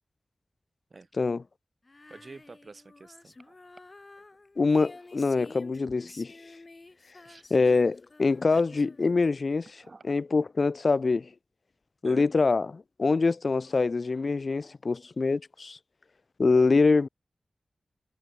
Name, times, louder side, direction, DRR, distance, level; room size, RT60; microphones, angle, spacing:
Female singing, 1.8-9.3, left 2 dB, 40° left, 5.4 m, -51 dB
voice 1, 2.1-3.5 7.2-7.4 8.5-8.9 9.8-10.1 12.0-12.3, right 3 dB, 50° right, 2.2 m, -48 dB
voice 2, 4.6-6.3 7.5-11.3 12.0-15.8 16.4-17.1, left 4 dB, 60° left, 0.5 m, -25 dB
wide cardioid pair, 85°, 0 cm